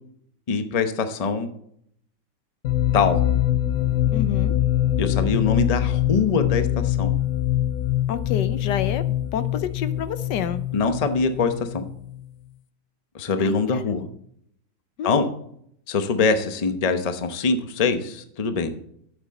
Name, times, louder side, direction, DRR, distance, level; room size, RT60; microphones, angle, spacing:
voice 1, 0.5-1.5 2.9-3.2 5.0-7.1 10.7-11.8 13.1-14.0 15.0-15.3 15.9-18.7, left 4 dB, 30° left, 8 dB, 0.7 m, -23 dB
sound 1, 2.6-12.3, left 12 dB, 65° left, 0.8 m, -24 dB
voice 2, 4.1-4.5 8.1-9.0 9.3-10.6 13.4-14.1 15.0-15.3, left 8 dB, 80° left, 12 dB, 1.4 m, -29 dB
11.5 x 8.1 x 4.2 m, 0.69 s
omnidirectional pair, 1.9 m